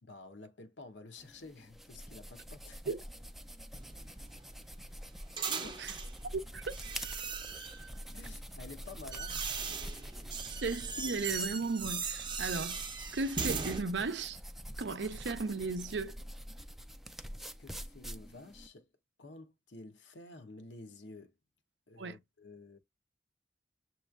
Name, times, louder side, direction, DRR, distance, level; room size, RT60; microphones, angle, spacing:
voice 1, 0.0-2.8 5.5-6.0 8.1-9.7 17.6-18.9 19.2-21.3 21.9-22.8, left 3 dB, 85° left, 0.9 m, -51 dB
sound 1, 1.2-18.7, equal, ahead, 0.3 m, -46 dB
sound 2, 3.7-6.1 6.7-7.9 8.6-13.8, right 5 dB, 25° right, 0.7 m, -39 dB
voice 2, 6.3-6.8 10.6-12.8 13.1-14.4 14.8-16.2 22.0-22.2, right 3 dB, 75° right, 0.6 m, -35 dB
7.1 x 3.1 x 2.4 m
head